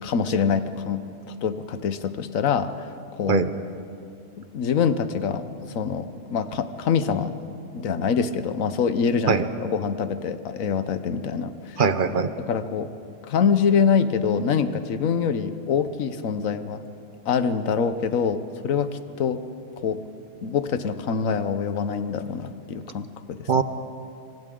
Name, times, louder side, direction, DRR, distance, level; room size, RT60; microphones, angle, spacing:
voice 1, 0.0-3.4 4.4-11.8 12.5-12.9 13.2-16.8 17.3-18.9 19.2-19.4 19.8-20.0 20.4-23.5, left 6 dB, 85° left, 11 dB, 1.3 m, -25 dB
voice 2, 11.8-12.3 23.5-23.6, right 5 dB, 45° right, 11 dB, 0.9 m, -21 dB
28.0 x 24.5 x 3.8 m, 2.5 s
omnidirectional pair, 1.4 m